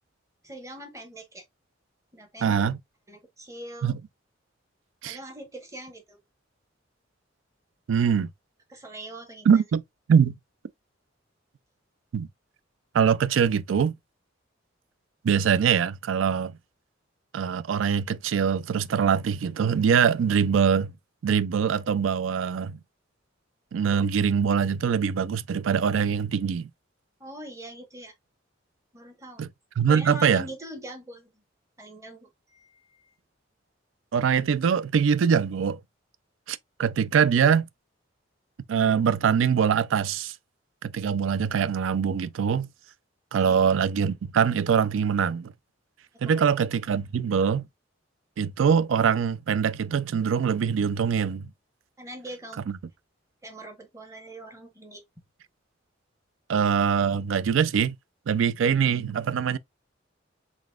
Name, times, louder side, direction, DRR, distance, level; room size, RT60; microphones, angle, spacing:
voice 1, 0.4-1.4 2.1-2.6 3.1-3.9 5.0-6.2 8.7-9.6 27.2-28.1 28.9-29.5 29.9-31.3 31.8-33.1 43.3-43.5 46.2-46.4 52.0-52.6 53.4-55.0, right 1 dB, 15° right, 1.1 m, -42 dB
voice 2, 2.4-2.8 3.8-4.0 5.0-5.2 7.9-8.3 9.5-9.8 10.1-10.3 12.1-12.3 12.9-14.0 15.2-16.5 17.3-20.9 21.2-22.8 23.7-26.7 29.4-29.5 29.8-30.4 34.1-35.8 36.5-37.7 38.7-40.3 40.8-42.7 43.3-45.5 46.2-47.7 48.4-51.5 52.7-52.8 56.5-58.0 58.3-59.6, right 7 dB, 80° right, 0.4 m, -23 dB
3.9 x 3.5 x 2.3 m
head